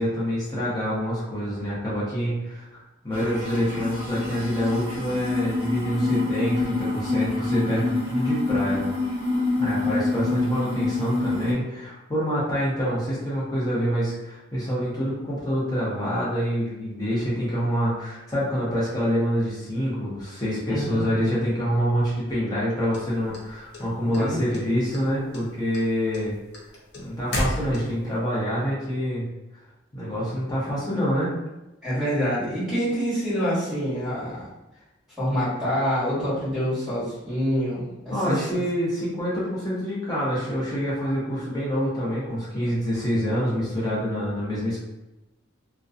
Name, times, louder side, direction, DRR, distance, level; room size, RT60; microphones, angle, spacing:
voice 1, 0.0-8.8 9.6-26.3 26.9-29.2 29.9-31.3 38.1-44.8, equal, 20° left, -8 dB, 0.7 m, -26 dB
sound 1, 3.1-11.5, left 3 dB, 25° right, 1.0 m, -26 dB
voice 2, 20.7-21.0 24.0-24.7 31.8-34.5 35.2-38.4, equal, 5° right, -13 dB, 1.3 m, -26 dB
sound 2, 22.9-24.2 24.5-25.1 25.3-28.1, equal, 55° left, 0.6 m, -31 dB
2.5 x 2.2 x 2.4 m, 0.97 s
head